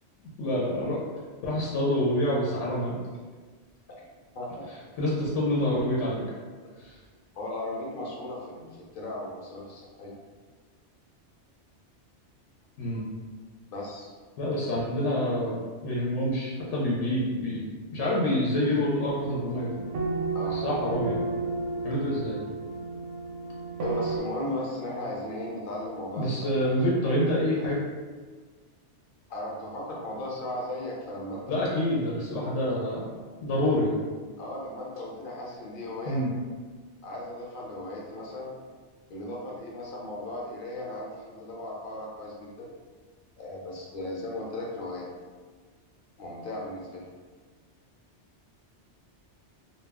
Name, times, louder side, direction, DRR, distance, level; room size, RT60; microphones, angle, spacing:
voice 1, 0.4-1.1 1.4-3.0 5.0-6.2 6.8-7.0 12.8-13.1 14.4-19.8 20.5-21.2 21.8-22.4 26.1-27.8 31.5-33.1 33.4-34.0 36.1-36.3, left 1 dB, 85° left, -5 dB, 0.9 m, -27 dB
voice 2, 7.4-10.1 13.7-14.1 20.3-20.6 23.8-26.7 29.3-31.7 34.4-36.2 37.0-38.5 39.1-42.7 43.4-45.1 46.2-47.0, left 1 dB, 55° left, -3 dB, 0.7 m, -36 dB
sound 1, 19.0-24.2, right 3 dB, 85° right, 0.9 m, -32 dB
2.3 x 2.0 x 3.4 m, 1.4 s
omnidirectional pair, 1.2 m